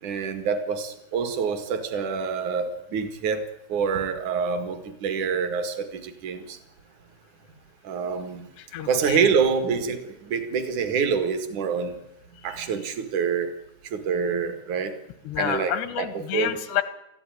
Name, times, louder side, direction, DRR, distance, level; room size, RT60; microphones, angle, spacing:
voice 1, 0.0-3.4 3.7-6.6 7.8-8.5 8.9-12.0 12.4-13.5 13.8-14.9 15.4-16.6, right 6 dB, 55° right, 8 dB, 2.9 m, -26 dB
voice 2, 8.6-9.3 15.3-16.8, left 11 dB, 85° left, 12 dB, 3.5 m, -29 dB
20.5 x 14.0 x 9.3 m, 0.83 s
omnidirectional pair, 4.7 m